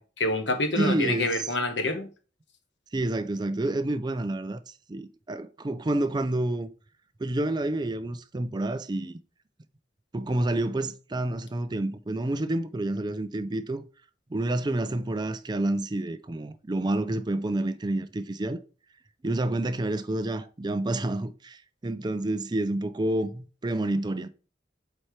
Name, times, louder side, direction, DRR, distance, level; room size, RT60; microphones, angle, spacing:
voice 1, 0.0-2.1, left 2 dB, 80° left, 1.2 m, -27 dB
voice 2, 0.8-1.5 2.9-6.7 7.2-9.2 10.1-13.8 14.3-18.6 19.2-24.3, right 1 dB, 25° right, 0.4 m, -29 dB
7.6 x 4.3 x 3.2 m
head